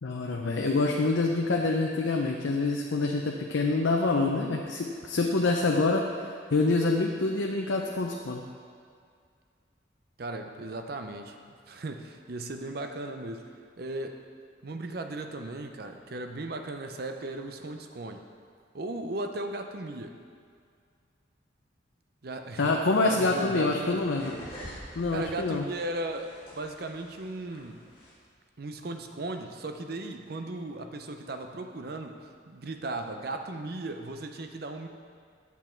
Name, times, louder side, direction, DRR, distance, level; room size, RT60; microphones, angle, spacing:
voice 1, 0.0-6.1 6.5-8.4 22.6-24.3 25.0-25.6, left 3 dB, 90° left, 0 dB, 0.6 m, -26 dB
voice 2, 10.2-11.4 11.7-13.5 13.8-14.2 14.6-18.2 18.7-20.2 22.2-22.8 23.0-24.0 25.1-27.8 28.6-34.9, right 2 dB, 55° right, 5 dB, 0.6 m, -36 dB
sound 1, 22.9-28.1, equal, 30° left, 2.0 m, -48 dB
8.4 x 7.0 x 4.4 m, 2.2 s
head